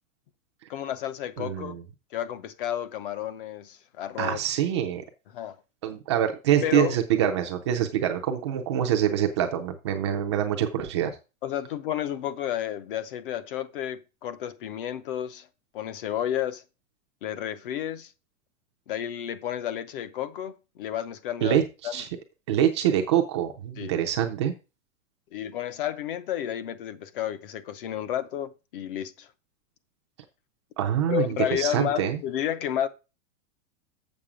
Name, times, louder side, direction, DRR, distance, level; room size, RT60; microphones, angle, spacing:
voice 1, 0.7-1.8 2.1-4.4 5.3-5.6 6.6-7.0 11.4-15.5 15.7-16.6 17.2-18.1 18.9-22.0 23.8-23.9 25.3-29.3 31.1-32.9, left 10 dB, 40° left, 0.7 m, -31 dB
voice 2, 1.4-1.8 4.2-5.0 5.8-11.1 21.4-22.1 22.5-24.5 30.8-32.2, right 10 dB, 20° right, 0.5 m, -25 dB
7.4 x 6.6 x 4.9 m
supercardioid pair, 175°, 40 cm